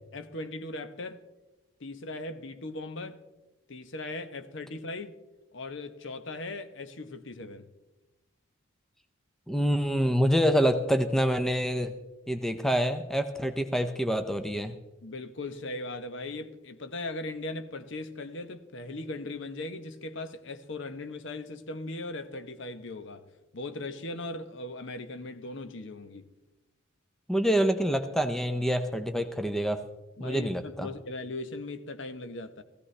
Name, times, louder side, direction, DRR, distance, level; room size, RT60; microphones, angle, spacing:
voice 1, 0.1-1.2 1.8-3.2 3.7-5.2 5.5-7.7 15.0-23.2 23.5-26.3 30.2-32.6, left 2 dB, 60° left, 0.8 m, -38 dB
voice 2, 9.5-11.9 12.3-14.8 27.3-29.8 30.2-30.9, equal, ahead, 0.6 m, -26 dB
16.5 x 15.5 x 3.3 m
head